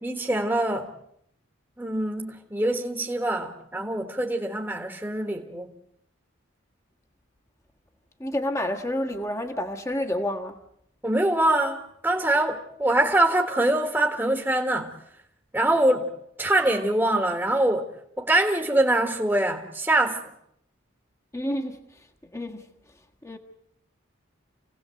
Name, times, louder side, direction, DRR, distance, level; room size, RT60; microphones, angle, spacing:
voice 1, 0.0-0.9 1.8-5.7 11.0-14.9 15.5-16.1 16.4-17.9 18.2-20.2, right 1 dB, 10° right, 1.6 m, -24 dB
voice 2, 8.2-10.6 21.3-22.1 22.3-22.7 23.2-23.4, left 1 dB, 15° left, 1.5 m, -29 dB
28.5 x 17.5 x 7.8 m
head